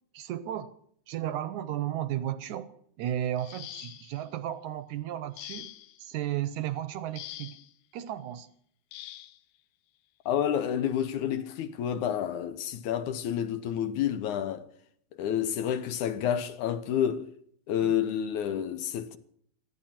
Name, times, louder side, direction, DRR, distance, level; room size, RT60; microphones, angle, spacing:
voice 1, 0.1-0.7 1.1-2.7 3.0-5.7 6.0-7.6 7.9-8.5 17.8-17.9, right 12 dB, 75° right, 2.0 m, -34 dB
sound 1, 3.4-4.3 5.4-6.0 7.2-7.7 8.9-9.4 10.6-10.7 11.2-11.5, left 14 dB, 90° left, 2.5 m, -44 dB
voice 2, 10.3-14.7 15.2-17.3 17.7-19.2, left 9 dB, 70° left, 2.3 m, -29 dB
18.0 x 13.0 x 5.8 m
omnidirectional pair, 3.9 m